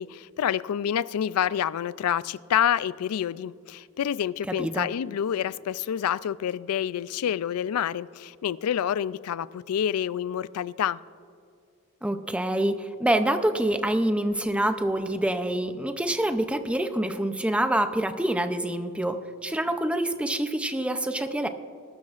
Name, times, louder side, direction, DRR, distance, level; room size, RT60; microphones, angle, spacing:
voice 1, 0.0-11.0, left 9 dB, 90° left, 19 dB, 0.3 m, -28 dB
voice 2, 4.5-4.9 12.0-21.5, right 1 dB, 5° right, 8 dB, 0.5 m, -26 dB
21.0 x 12.5 x 2.5 m, 2.4 s
head